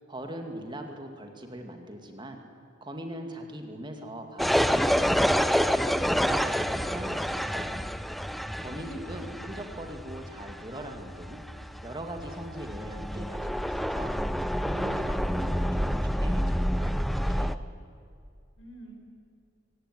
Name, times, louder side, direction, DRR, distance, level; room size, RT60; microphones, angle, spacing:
voice 1, 0.0-2.4 2.8-5.8 6.1-7.9 8.6-14.1 14.6-17.0 17.3-17.7, right 1 dB, 25° right, 4 dB, 2.3 m, -41 dB
sound 1, 4.4-17.6, equal, ahead, 0.5 m, -28 dB
voice 2, 8.4-9.6 18.6-19.0, equal, 80° left, 2 dB, 6.0 m, -46 dB
24.0 x 18.0 x 9.5 m, 2.4 s
head